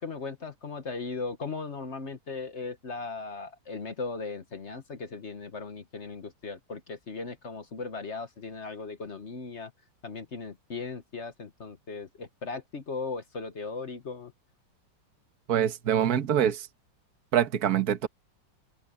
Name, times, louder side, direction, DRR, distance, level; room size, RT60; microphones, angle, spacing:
voice 1, 0.0-9.7 10.0-14.3, left 4 dB, 45° left, 1.2 m, -37 dB
voice 2, 15.5-16.7 17.3-18.1, right 9 dB, 55° right, 1.7 m, -25 dB
open air
omnidirectional pair, 2.0 m